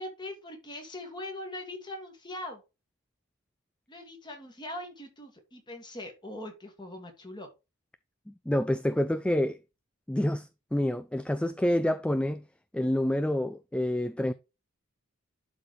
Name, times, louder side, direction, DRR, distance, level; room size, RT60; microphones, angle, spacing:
voice 1, 0.0-2.6 3.9-7.5, left 1 dB, 20° left, 2.1 m, -41 dB
voice 2, 8.5-9.6 10.1-12.4 12.7-14.3, left 1 dB, 5° left, 0.3 m, -27 dB
11.5 x 4.2 x 3.1 m
head